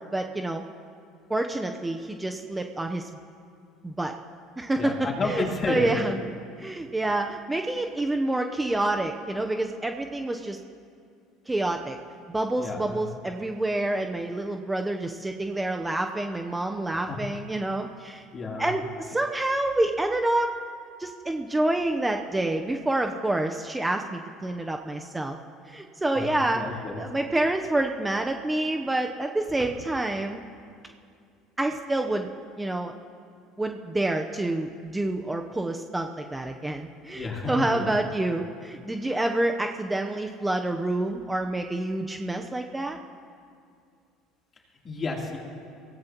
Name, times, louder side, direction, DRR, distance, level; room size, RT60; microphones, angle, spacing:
voice 1, 0.1-0.6 1.3-3.1 3.8-4.1 4.6-6.2 6.6-10.6 11.5-12.0 12.3-18.2 18.6-20.5 21.0-25.4 25.7-30.4 31.6-32.3 32.6-32.9 33.6-43.0, right 2 dB, 10° right, 4 dB, 0.8 m, -28 dB
voice 2, 4.8-5.9 12.6-13.0 17.1-17.2 18.3-18.7 26.1-27.0 37.1-38.0 44.8-45.4, left 3 dB, 30° left, -2 dB, 3.4 m, -31 dB
23.5 x 17.0 x 3.0 m, 2.3 s
supercardioid pair, 100°, 0 cm